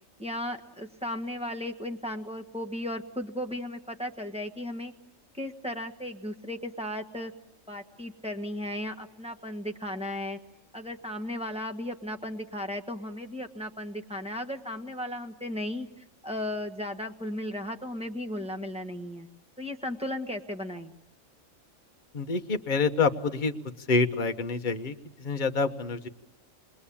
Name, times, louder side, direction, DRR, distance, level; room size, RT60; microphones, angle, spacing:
voice 1, 0.2-4.9 5.4-7.3 7.7-10.4 10.7-19.3 19.6-20.9, left 1 dB, 5° right, 2 dB, 1.4 m, -35 dB
voice 2, 22.1-23.5 23.9-26.1, left 4 dB, 40° left, 6 dB, 1.3 m, -27 dB
28.5 x 21.5 x 8.6 m, 0.89 s
omnidirectional pair, 1.4 m